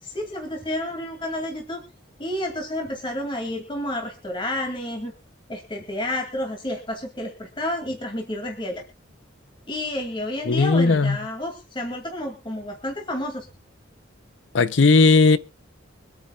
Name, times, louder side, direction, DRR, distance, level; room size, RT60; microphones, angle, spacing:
voice 1, 0.0-1.8 2.2-5.1 5.5-8.8 9.7-13.5, left 1 dB, 25° left, 2.4 m, -30 dB
voice 2, 10.5-11.2 14.5-15.4, left 3 dB, 65° left, 0.7 m, -16 dB
24.5 x 9.4 x 2.4 m
head